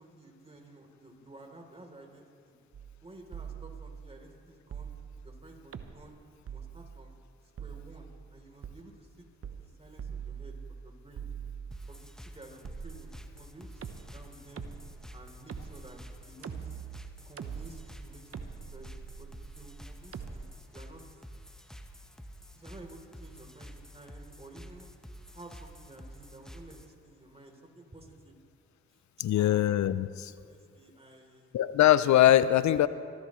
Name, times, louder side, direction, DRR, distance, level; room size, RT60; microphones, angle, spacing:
voice 1, 0.0-2.5 3.0-4.9 5.2-6.1 6.4-7.2 7.6-9.3 9.5-10.6 10.8-11.2 11.9-14.7 15.1-16.8 17.2-19.3 19.5-21.2 22.5-24.9 25.3-28.4 28.9-29.0 29.3-29.6 30.4-31.5, right 2 dB, 20° right, 2 dB, 3.5 m, -52 dB
sound 1, 2.7-3.0 3.3-4.1 4.7-5.3 5.7-6.1 6.5-7.1 7.6-8.2 8.6-8.8 9.4-9.7 10.0-10.8 11.1-12.0 12.6-13.4 13.8-20.4, right 7 dB, 50° right, 1.0 m, -43 dB
sound 2, 11.7-26.9, equal, ahead, 1.2 m, -49 dB
voice 2, 29.2-30.3 31.5-32.9, left 12 dB, 70° left, 16 dB, 0.6 m, -22 dB
23.0 x 14.5 x 3.2 m, 2.3 s
supercardioid pair, 45°, 30 cm